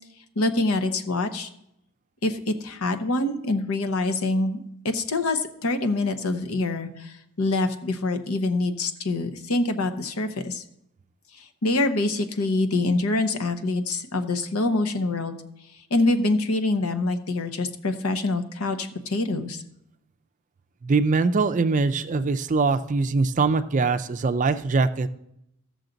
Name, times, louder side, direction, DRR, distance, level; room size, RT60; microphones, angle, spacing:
voice 1, 0.4-1.5 2.2-4.6 4.8-10.6 11.4-15.4 15.9-19.6, left 2 dB, 85° left, 7 dB, 0.9 m, -25 dB
voice 2, 20.8-25.1, right 4 dB, 35° right, 10 dB, 0.4 m, -22 dB
14.5 x 6.4 x 3.9 m, 0.79 s
head